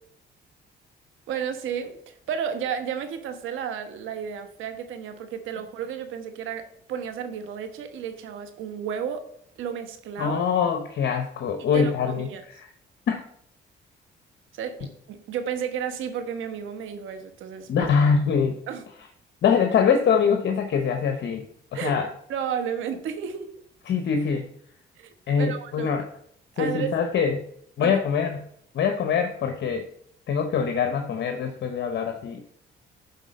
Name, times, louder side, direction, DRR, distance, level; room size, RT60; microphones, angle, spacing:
voice 1, 1.3-9.3 9.6-10.4 11.7-12.4 14.5-17.9 18.7-18.8 21.7-22.0 22.3-23.5 25.0-26.0 26.6-26.9 27.8-28.0, right 8 dB, 85° right, 8 dB, 1.2 m, -32 dB
voice 2, 10.2-12.3 12.6-12.7 13.1-13.2 17.7-18.6 19.4-21.4 21.7-22.1 23.9-24.5 25.3-26.0 26.6-27.4 27.8-28.4 28.7-29.8 30.3-32.5, left 6 dB, 65° left, 5 dB, 0.9 m, -23 dB
10.5 x 4.2 x 5.3 m, 0.69 s
cardioid pair, 90°, 20 cm